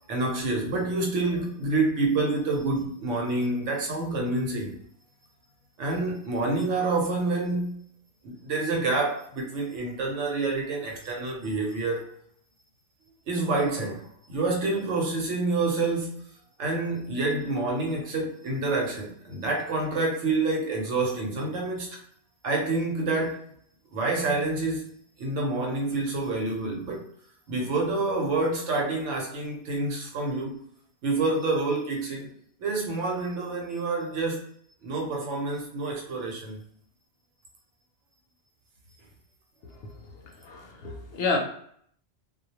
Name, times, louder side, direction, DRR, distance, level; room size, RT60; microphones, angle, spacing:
voice 1, 0.1-4.7 5.8-7.8 8.2-12.0 13.3-16.2 16.6-22.0 22.4-23.4 23.9-24.9 25.2-27.0 27.5-30.6 31.0-32.3 32.6-34.4 34.8-36.6, right 3 dB, 85° right, 1.0 m, -28 dB
voice 2, 40.4-41.4, left 4 dB, 65° left, 0.7 m, -29 dB
2.2 x 2.1 x 2.8 m
omnidirectional pair, 1.2 m